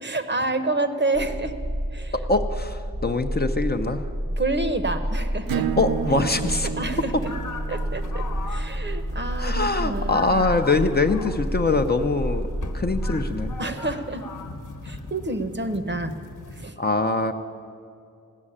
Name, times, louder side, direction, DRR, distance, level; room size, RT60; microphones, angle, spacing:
voice 1, 0.0-1.5 1.9-2.1 4.4-5.7 6.6-7.3 7.7-10.5 13.6-14.2 14.8-16.1 16.5-16.8, right 2 dB, 30° right, 8 dB, 0.9 m, -28 dB
sound 1, 1.1-13.6, equal, 10° right, 0.5 m, -30 dB
voice 2, 2.1-4.0 5.8-6.7 9.4-12.5 12.7-13.6 16.8-17.3, left 3 dB, 30° left, 6 dB, 0.6 m, -23 dB
sound 2, 5.5-16.7, left 3 dB, 60° left, 1.1 m, -40 dB
Acoustic guitar / Strum, 5.5-10.7, right 8 dB, 85° right, 0.5 m, -33 dB
15.5 x 6.3 x 9.9 m, 2.4 s
cardioid pair, 60°, 34 cm